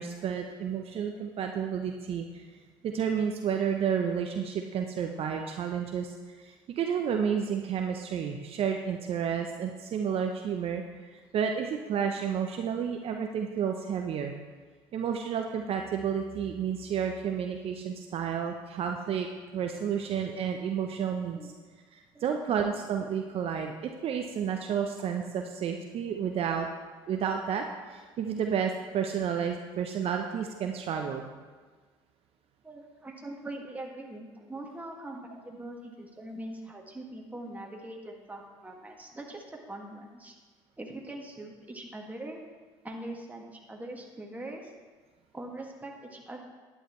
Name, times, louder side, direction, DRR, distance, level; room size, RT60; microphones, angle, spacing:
voice 1, 0.0-2.4 2.8-14.3 14.9-19.3 19.5-21.5 21.9-26.7 27.1-31.2, right 7 dB, 55° right, 3 dB, 0.7 m, -31 dB
voice 2, 32.6-40.3 40.8-42.4 42.8-44.7 45.3-46.4, right 1 dB, 15° right, 0 dB, 2.0 m, -42 dB
11.5 x 9.1 x 3.2 m, 1.4 s
hypercardioid pair, 65°, 12 cm